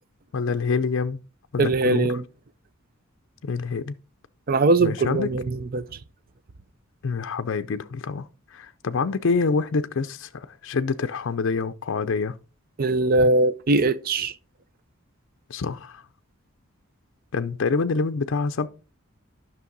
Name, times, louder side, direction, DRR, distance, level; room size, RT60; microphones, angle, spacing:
voice 1, 0.3-1.2 1.5-2.2 3.4-3.9 4.8-5.3 7.0-12.4 15.5-16.0 17.3-18.7, left 4 dB, 60° left, 0.5 m, -26 dB
voice 2, 1.6-2.2 4.5-5.8 12.8-14.3, right 2 dB, 45° right, 0.5 m, -21 dB
11.0 x 6.1 x 3.9 m
head